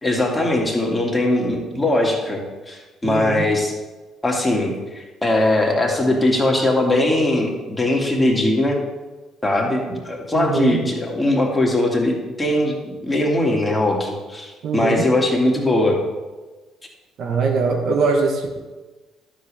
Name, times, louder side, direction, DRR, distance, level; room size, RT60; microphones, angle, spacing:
voice 1, 0.0-3.7 4.2-8.8 9.4-16.0, left 1 dB, 15° left, 0 dB, 2.4 m, -20 dB
voice 2, 3.0-3.5 10.3-10.8 14.6-15.1 17.2-18.6, right 4 dB, 55° right, 2 dB, 1.4 m, -22 dB
12.5 x 7.3 x 3.5 m, 1.2 s
figure-of-eight pair, 50°, 0 cm